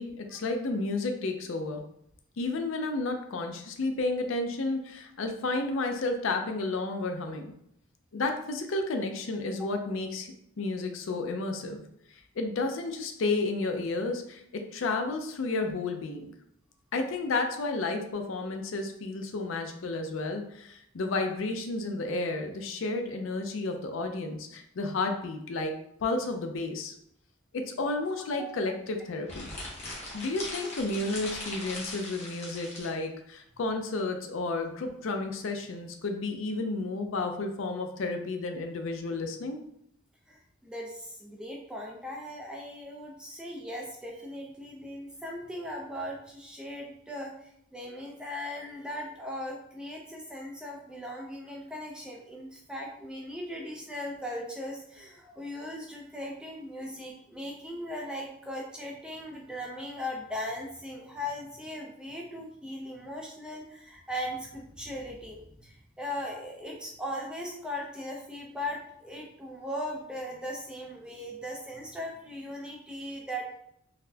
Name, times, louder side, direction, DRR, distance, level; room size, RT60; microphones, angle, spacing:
voice 1, 0.0-1.8 2.4-7.5 8.1-11.8 12.1-14.4 14.7-16.3 16.9-25.7 26.0-26.9 27.5-29.5 30.1-39.6, left 3 dB, 70° left, 5 dB, 0.4 m, -32 dB
sound 1, 29.2-32.9, left 2 dB, 30° left, 0.8 m, -40 dB
voice 2, 40.3-73.6, left 1 dB, 5° right, -2 dB, 0.4 m, -38 dB
4.0 x 2.1 x 2.7 m, 0.71 s
head